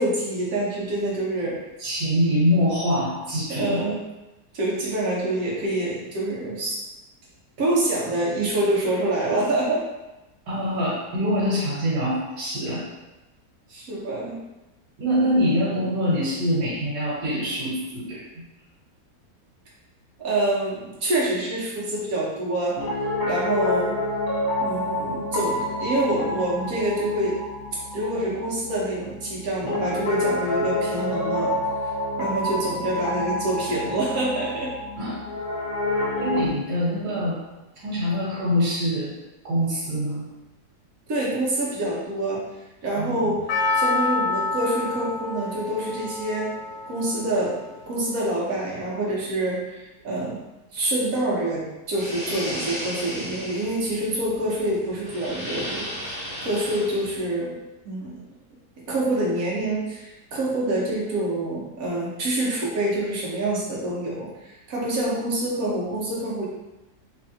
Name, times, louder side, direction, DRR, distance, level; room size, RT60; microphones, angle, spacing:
voice 1, 0.0-1.6 3.5-4.0 4.5-6.8 7.6-9.8 13.7-14.4 20.2-22.8 23.2-24.0 24.6-27.4 27.9-31.5 32.2-34.7 41.1-42.5 42.8-46.5 46.9-47.6 47.9-50.4 50.7-57.6 57.8-58.1 58.9-66.5, right 1 dB, 60° right, -5 dB, 1.3 m, -26 dB
voice 2, 1.8-3.8 10.5-12.9 15.0-18.4 35.0-35.2 36.2-37.4 37.8-39.1 39.4-40.2 42.9-43.4, equal, 85° right, -9 dB, 1.7 m, -24 dB
Piano, 22.8-36.5, left 1 dB, 65° left, 0.9 m, -28 dB
Percussion, 43.5-47.9 48.1-48.2, left 3 dB, 85° left, 1.2 m, -28 dB
sound 1, 52.0-57.3, equal, 40° left, 1.6 m, -35 dB
3.3 x 3.3 x 2.7 m, 1.0 s
omnidirectional pair, 1.8 m